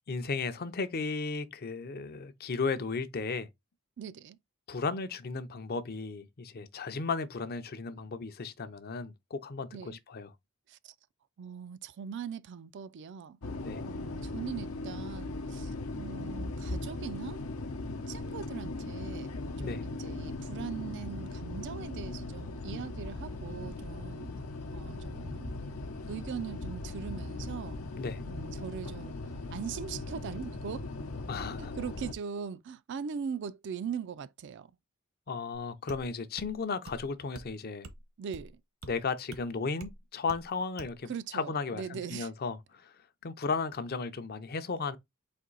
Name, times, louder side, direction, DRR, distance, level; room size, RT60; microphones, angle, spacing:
voice 1, 0.1-3.5 4.7-10.3 13.6-13.8 19.6-20.1 28.0-28.2 31.3-31.7 35.3-37.9 38.9-42.9 43.2-45.0, left 4 dB, 45° left, 0.6 m, -35 dB
voice 2, 4.0-4.4 9.7-10.0 10.7-10.9 11.4-13.4 13.8-17.4 18.1-24.3 24.7-25.5 26.1-27.8 28.3-29.2 29.5-30.9 31.6-34.7 38.2-38.6 41.1-42.3, right 7 dB, 55° right, 0.3 m, -40 dB
sound 1, 13.4-32.1, left 2 dB, 85° left, 0.8 m, -39 dB
sound 2, 35.9-36.1 36.4-36.5 36.9-37.1 37.4-37.5 37.8-38.0 38.3-38.5 38.8-38.9 39.3-39.4 39.8-40.0 40.3-40.5 40.8-41.0, right 2 dB, 75° right, 1.0 m, -46 dB
4.3 x 2.7 x 3.9 m
head